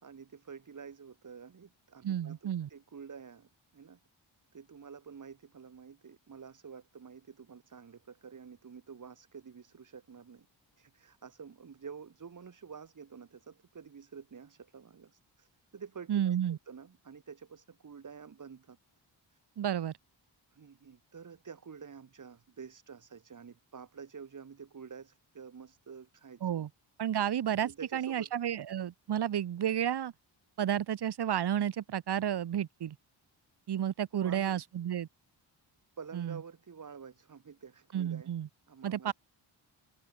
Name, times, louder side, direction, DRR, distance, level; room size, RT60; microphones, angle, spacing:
voice 1, 0.0-4.0 4.5-10.5 10.8-15.5 15.7-18.8 20.5-26.7 27.6-28.3 34.1-34.6 36.0-38.3 38.7-39.1, right 6 dB, 40° right, 2.7 m, -49 dB
voice 2, 2.0-2.7 16.1-16.6 19.6-19.9 26.4-26.7 27.0-30.1 30.6-33.0 33.7-35.1 36.1-36.4 37.9-38.5 38.8-39.1, right 10 dB, 60° right, 1.2 m, -31 dB
wide cardioid pair, 115°, 46 cm